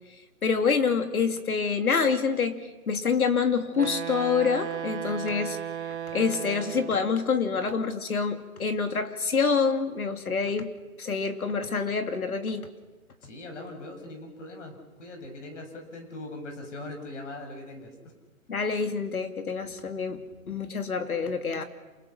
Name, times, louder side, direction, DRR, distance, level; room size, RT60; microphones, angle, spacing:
voice 1, 0.4-2.6 2.9-5.6 6.1-10.7 11.0-12.7 18.5-20.2 20.5-21.6, left 5 dB, 85° left, 6 dB, 2.9 m, -26 dB
Wind instrument woodwind instrument, 3.7-7.2, right 9 dB, 55° right, 1.3 m, -35 dB
voice 2, 13.2-18.1, left 2 dB, 55° left, 4 dB, 6.9 m, -41 dB
28.0 x 27.5 x 5.9 m, 1.2 s
hypercardioid pair, 155°, 42 cm